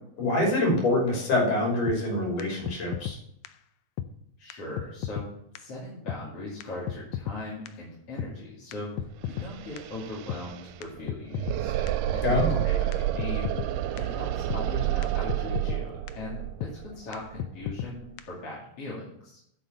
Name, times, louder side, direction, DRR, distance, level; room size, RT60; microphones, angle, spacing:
voice 1, 0.2-3.2 12.2-12.6, left 2 dB, 65° left, 0 dB, 4.6 m, -25 dB
sound 1, 1.9-2.0 2.4-2.5 2.7-3.2 3.5-3.6 4.0-4.1 4.5-4.6 4.8-5.3 5.6-5.7 6.1-6.2 6.6-6.7 6.9-7.4 7.7-7.8 8.2-8.3 8.7-9.5 9.8-9.9 10.3-10.4 10.8-10.9 11.1-11.6 11.9-12.0 12.4-12.5 12.9-13.0 13.2-13.7 14.0-14.1 14.5-14.6 15.0-15.1 15.3-15.8 16.1-16.2 16.6-16.7 17.1-17.2 17.4-17.9 18.2-18.3, left 11 dB, 90° left, 2.4 m, -33 dB
voice 2, 4.4-5.2 5.5-11.8 12.1-13.5 14.0-19.4, left 2 dB, 45° left, -7 dB, 3.3 m, -39 dB
sound 2, 9.0-9.1 9.3-18.1, right 13 dB, 80° right, 2.1 m, -30 dB
9.7 x 6.0 x 6.8 m, 0.73 s
omnidirectional pair, 3.9 m